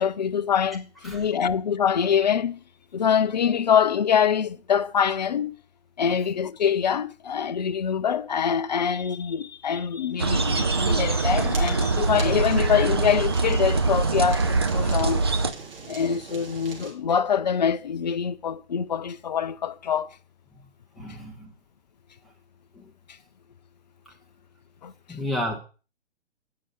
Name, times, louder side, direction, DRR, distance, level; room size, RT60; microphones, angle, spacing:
voice 1, 0.0-2.6 2.9-5.6 6.0-15.2 15.8-20.2 24.8-24.9, left 7 dB, 40° left, 0.4 m, -24 dB
sound 1, 10.2-15.5, right 3 dB, 25° right, 0.4 m, -23 dB
Fire, 10.2-16.9, right 4 dB, 55° right, 3.4 m, -41 dB
voice 2, 21.0-21.5 22.8-22.9 25.1-25.6, left 1 dB, ahead, 0.9 m, -31 dB
8.7 x 5.6 x 6.7 m
figure-of-eight pair, 130°, 34 cm